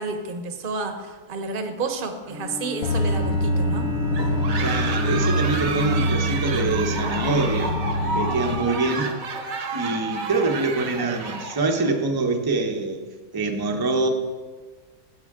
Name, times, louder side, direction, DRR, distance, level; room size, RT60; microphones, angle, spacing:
voice 1, 0.0-3.9, right 3 dB, 40° right, 6 dB, 1.0 m, -30 dB
Bowed string instrument, 2.3-6.9, left 5 dB, 80° right, 2.1 m, -34 dB
sound 1, 2.8-8.7, equal, 70° left, 1.0 m, -25 dB
sound 2, 4.1-12.0, right 3 dB, 60° right, 1.3 m, -31 dB
voice 2, 4.6-7.7 8.1-9.1 9.7-13.0 13.3-14.1, right 3 dB, 20° right, 3 dB, 0.6 m, -25 dB
14.0 x 8.3 x 3.7 m, 1.4 s
omnidirectional pair, 1.7 m